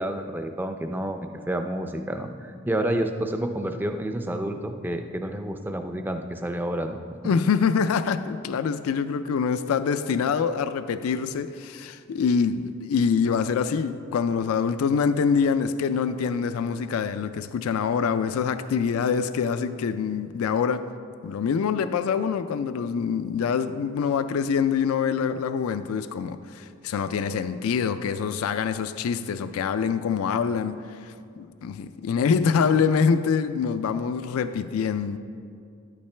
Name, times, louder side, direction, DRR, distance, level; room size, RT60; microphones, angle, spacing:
voice 1, 0.0-7.0 7.2-7.3, right 1 dB, 10° right, 0.3 m, -29 dB
voice 2, 7.2-20.9 21.2-35.2, left 6 dB, 85° left, 0.3 m, -25 dB
11.0 x 8.5 x 3.3 m
head